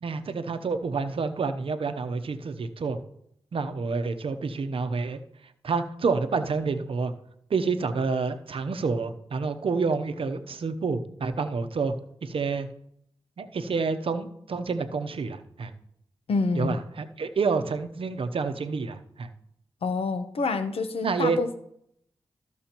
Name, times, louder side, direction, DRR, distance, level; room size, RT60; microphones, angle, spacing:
voice 1, 0.0-3.0 3.5-5.2 5.6-7.1 7.5-11.9 12.2-12.7 13.4-15.7 16.5-19.3 21.0-21.4, right 4 dB, 65° right, 8 dB, 0.8 m, -28 dB
voice 2, 16.3-16.8 19.8-21.6, left 4 dB, 75° left, 9 dB, 0.8 m, -27 dB
14.5 x 6.2 x 3.0 m, 0.74 s
cardioid pair, 55°, 10 cm